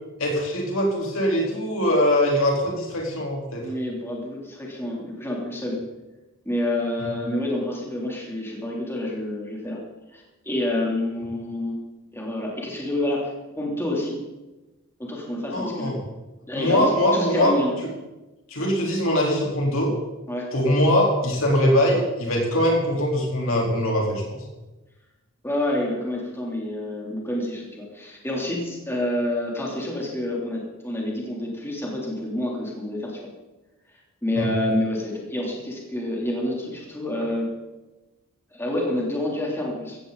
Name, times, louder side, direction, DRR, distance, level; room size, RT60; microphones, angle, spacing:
voice 1, 0.2-3.6 7.0-7.1 15.5-16.0 16.6-17.5 18.5-19.9 20.5-24.4 34.4-34.5, equal, 65° left, -1 dB, 4.0 m, -22 dB
voice 2, 3.6-5.8 6.4-9.8 10.1-11.8 12.1-14.2 15.0-15.9 16.5-17.7 20.3-20.5 25.4-33.2 34.2-37.5 38.5-40.0, left 1 dB, 10° left, -3 dB, 3.3 m, -28 dB
16.0 x 15.5 x 4.1 m, 1.1 s
head